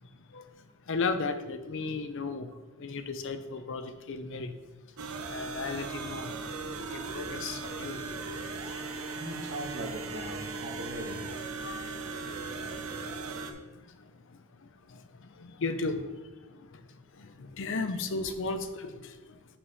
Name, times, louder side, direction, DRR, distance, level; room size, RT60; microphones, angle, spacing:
voice 1, 0.0-4.6 4.8-6.3 6.8-8.0 8.7-9.1 11.6-12.4 12.7-13.2 13.5-19.6, left 3 dB, 60° left, 0.6 m, -37 dB
sound 1, 5.0-13.5, right 4 dB, 70° right, 0.7 m, -38 dB
voice 2, 9.2-11.4 16.4-16.6, right 1 dB, 55° right, 1.3 m, -40 dB
5.9 x 4.9 x 5.4 m
head